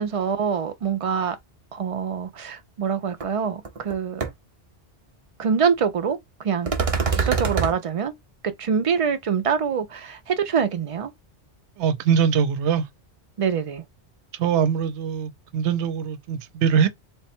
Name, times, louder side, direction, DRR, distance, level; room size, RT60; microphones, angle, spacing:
voice 1, 0.0-1.4 1.7-4.2 5.4-6.7 7.1-8.1 8.4-11.1 13.4-13.8, right 6 dB, 60° right, 0.3 m, -25 dB
sound 1, 3.2-3.3 3.7-3.9 4.2-4.3 6.7-7.7, right 5 dB, 35° right, 0.7 m, -23 dB
voice 2, 11.8-12.9 14.4-16.9, right 7 dB, 80° right, 0.9 m, -22 dB
3.6 x 2.1 x 4.2 m
omnidirectional pair, 1.2 m